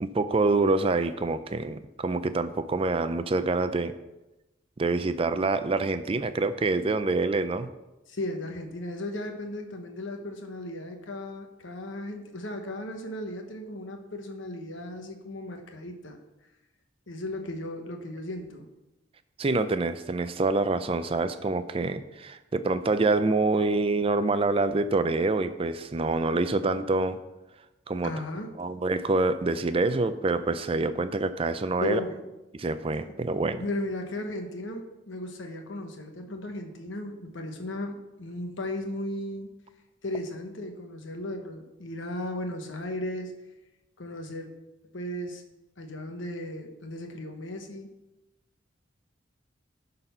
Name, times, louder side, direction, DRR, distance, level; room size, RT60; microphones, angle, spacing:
voice 1, 0.0-4.0 4.8-7.7 19.4-27.2 27.9-28.1 28.6-32.0 32.5-33.6, right 3 dB, 30° right, 11 dB, 0.4 m, -26 dB
voice 2, 8.1-16.2 17.1-18.7 28.0-28.6 31.8-32.2 33.6-39.5 40.0-43.3 44.0-44.5 44.9-45.4 45.8-47.9, left 1 dB, 70° left, 4 dB, 1.2 m, -36 dB
11.5 x 4.1 x 5.5 m, 1.0 s
head